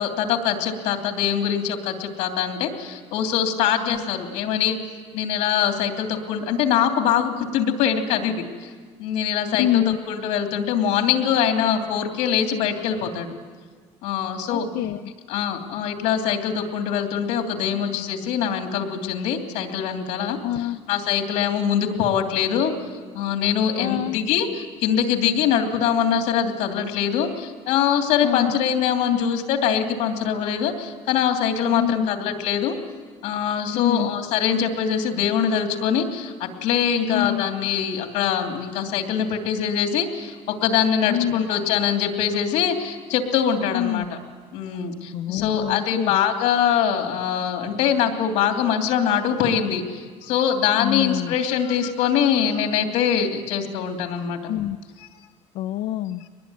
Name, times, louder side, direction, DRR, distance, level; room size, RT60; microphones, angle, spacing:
voice 1, 0.0-4.8 5.1-8.7 9.0-13.3 14.0-14.7 15.3-20.4 20.9-22.7 23.1-32.7 33.2-44.0 44.5-54.4, left 8 dB, 85° left, 4 dB, 3.0 m, -23 dB
voice 2, 9.5-10.0 14.5-15.0 20.4-20.8 23.8-24.2 28.2-28.6 31.7-32.1 33.7-34.1 37.1-37.4 41.0-41.4 43.7-44.1 45.1-46.2 50.8-51.3 54.5-54.8 55.5-56.2, left 13 dB, 70° left, 8 dB, 0.6 m, -26 dB
23.0 x 20.5 x 9.4 m, 1.5 s
cardioid pair, 170°, 12 cm